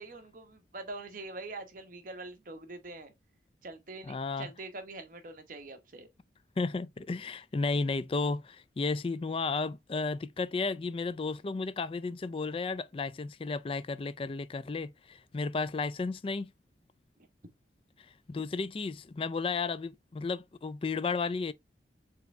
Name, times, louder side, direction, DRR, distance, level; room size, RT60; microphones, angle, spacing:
voice 1, 0.0-3.1 3.6-6.1 15.3-15.5 17.2-17.3, right 2 dB, 50° right, 1.0 m, -44 dB
voice 2, 4.1-4.5 6.6-16.5 18.3-21.5, left 4 dB, 30° left, 0.3 m, -33 dB
4.7 x 3.4 x 3.2 m
head